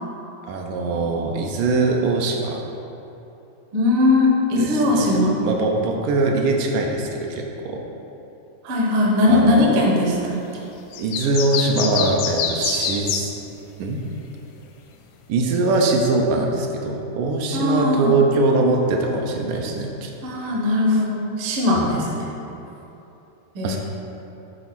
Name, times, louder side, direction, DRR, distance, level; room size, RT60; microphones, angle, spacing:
voice 1, 0.5-2.6 4.6-7.8 9.3-9.7 11.0-13.3 13.8-14.0 15.3-20.1 21.8-21.9 23.6-23.8, right 3 dB, 80° right, 1 dB, 2.2 m, -22 dB
voice 2, 3.7-5.4 8.6-10.4 17.5-18.1 20.2-22.3 23.5-23.8, left 2 dB, 60° right, -2 dB, 1.5 m, -19 dB
sound 1, 10.9-13.3, left 7 dB, 80° left, 1.8 m, -25 dB
8.0 x 4.2 x 6.0 m, 3.0 s
omnidirectional pair, 3.8 m